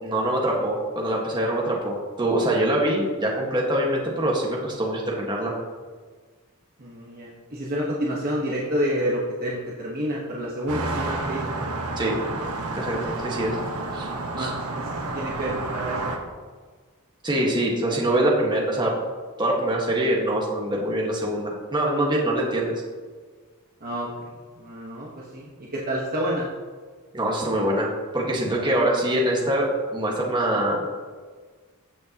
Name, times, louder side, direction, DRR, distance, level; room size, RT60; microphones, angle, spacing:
voice 1, 0.0-5.5 12.0-12.2 12.7-13.6 13.9-14.1 14.4-14.5 17.2-18.9 19.4-22.7 27.1-31.0, right 1 dB, 20° right, -3 dB, 1.5 m, -24 dB
voice 2, 6.8-11.5 13.1-13.5 14.3-16.1 23.8-24.3 24.6-26.5, equal, 40° right, -5 dB, 1.2 m, -29 dB
sound 1, 10.7-16.2, right 2 dB, 80° right, 1.2 m, -30 dB
15.0 x 6.6 x 2.9 m, 1.5 s
head